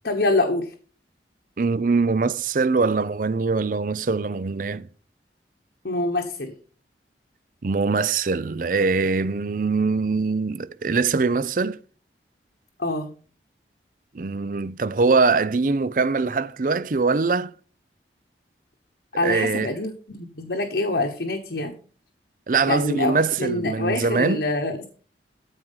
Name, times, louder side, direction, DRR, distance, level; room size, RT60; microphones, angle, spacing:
voice 1, 0.0-0.7 5.8-6.5 12.8-13.1 19.1-21.7 22.7-24.9, left 2 dB, 65° left, 1.2 m, -25 dB
voice 2, 1.6-4.9 7.6-11.8 14.1-17.5 19.2-19.7 22.5-24.4, right 4 dB, 45° right, 0.5 m, -23 dB
13.5 x 4.7 x 5.6 m
head